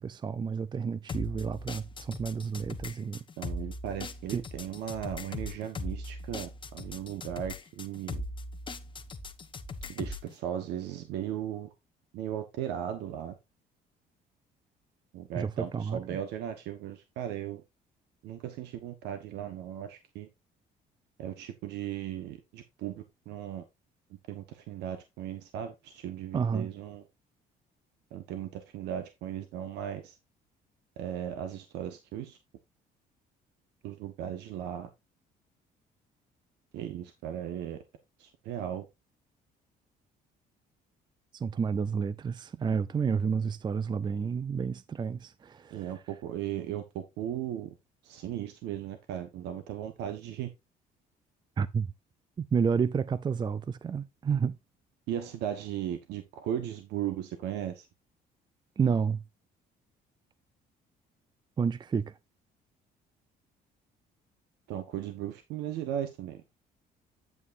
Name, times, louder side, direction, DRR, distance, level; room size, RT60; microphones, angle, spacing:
voice 1, 0.0-3.2 4.3-4.4 15.3-16.2 26.3-26.7 41.3-45.9 51.6-51.9 52.4-54.6 58.8-59.2 61.6-62.1, right 6 dB, 25° right, 0.5 m, -30 dB
sound 1, 1.1-10.3, left 2 dB, 30° left, 1.3 m, -39 dB
voice 2, 3.4-8.2 9.8-11.7 12.1-13.4 15.1-17.6 18.2-20.3 21.2-23.6 24.3-27.0 28.1-30.2 31.0-32.4 33.8-34.9 36.7-37.8 38.2-38.9 45.7-47.7 48.0-50.5 55.1-57.9 64.7-66.4, right 10 dB, 85° right, 1.3 m, -37 dB
9.2 x 8.3 x 2.6 m
cardioid pair, 110°, 17 cm